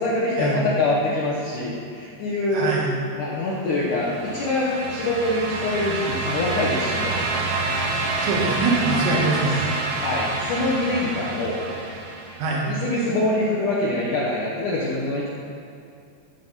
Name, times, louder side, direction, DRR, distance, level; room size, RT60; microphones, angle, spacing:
voice 1, 0.0-2.7 3.1-7.4 9.9-11.6 12.6-15.3, left 2 dB, 80° left, -6 dB, 1.8 m, -24 dB
voice 2, 2.5-2.9 8.2-9.6 12.4-12.8, right 3 dB, 85° right, -3 dB, 3.8 m, -23 dB
sound 1, 3.8-12.7, right 3 dB, 70° right, 2.0 m, -28 dB
13.5 x 5.8 x 4.0 m, 2.4 s
omnidirectional pair, 5.1 m